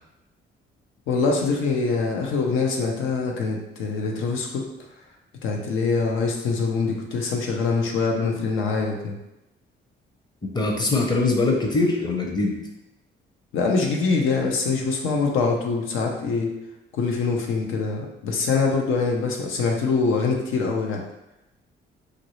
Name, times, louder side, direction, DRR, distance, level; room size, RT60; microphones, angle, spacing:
voice 1, 1.1-4.6 5.4-9.1 13.5-16.5 16.9-21.0, left 4 dB, 85° left, 1 dB, 0.6 m, -24 dB
voice 2, 10.5-12.6, left 3 dB, 20° left, 1 dB, 0.7 m, -22 dB
3.1 x 2.6 x 3.0 m, 0.93 s
cardioid pair, 90°, 20 cm